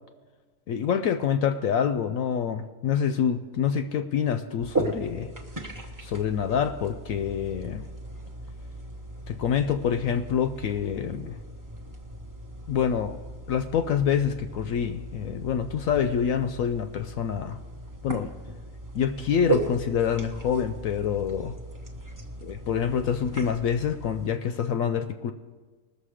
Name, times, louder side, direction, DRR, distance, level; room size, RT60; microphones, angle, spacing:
voice 1, 0.7-5.3 6.0-7.8 9.3-11.4 12.7-13.2 13.5-17.6 18.0-18.3 18.9-21.6 22.4-25.3, left 8 dB, 70° left, 9 dB, 0.8 m, -26 dB
sound 1, 4.6-24.3, right 2 dB, 15° right, 0.7 m, -37 dB
20.5 x 6.8 x 4.9 m, 1.4 s
omnidirectional pair, 1.7 m